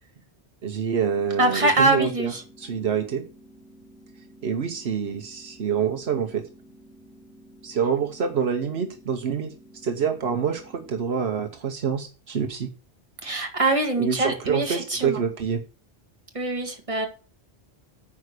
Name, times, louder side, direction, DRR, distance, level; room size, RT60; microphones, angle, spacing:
voice 1, 0.6-2.3 2.6-3.2 4.4-6.5 7.6-9.5 9.8-12.7 14.0-15.6, right 7 dB, 75° right, 7 dB, 1.2 m, -26 dB
sound 1, 0.9-11.0, right 1 dB, ahead, 2.6 m, -51 dB
voice 2, 1.4-2.4 13.2-15.2 16.3-17.1, right 2 dB, 30° right, 3 dB, 1.9 m, -23 dB
9.0 x 4.9 x 6.6 m, 0.36 s
omnidirectional pair, 1.1 m